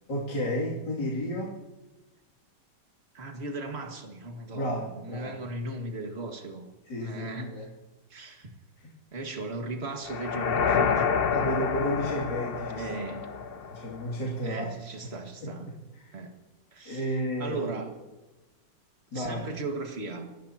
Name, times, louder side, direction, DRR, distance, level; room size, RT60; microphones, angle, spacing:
voice 1, 0.1-1.6 4.5-5.3 6.9-7.7 8.8-8.9 11.3-12.9 13.7-14.7 15.4-16.1 16.8-17.6 19.1-19.5, equal, 80° left, -5 dB, 3.3 m, -32 dB
voice 2, 3.1-6.7 7.0-7.7 8.1-8.5 9.1-11.4 12.8-13.3 14.4-15.7 16.1-16.3 16.7-17.9 19.1-20.3, right 2 dB, 40° right, 3 dB, 2.1 m, -37 dB
sound 1, 10.0-14.2, left 6 dB, 50° left, 0.7 m, -28 dB
28.5 x 16.0 x 2.9 m, 1.1 s
omnidirectional pair, 1.9 m